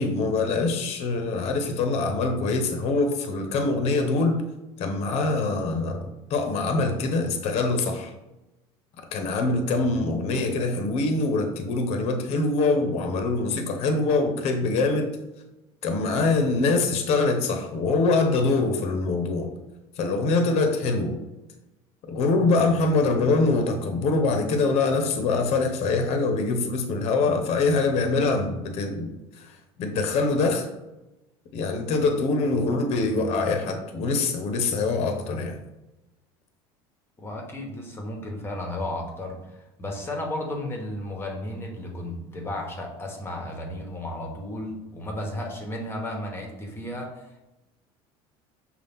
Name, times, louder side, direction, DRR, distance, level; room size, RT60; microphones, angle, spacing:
voice 1, 0.0-4.4 4.8-8.1 9.1-15.1 15.8-19.5 20.0-21.2 22.1-29.1 29.4-30.7 31.5-35.6, left 3 dB, 55° left, 5 dB, 0.8 m, -24 dB
voice 2, 37.2-47.4, left 1 dB, 20° left, 1 dB, 1.0 m, -34 dB
5.5 x 2.4 x 3.5 m, 0.99 s
supercardioid pair, 110°, 13 cm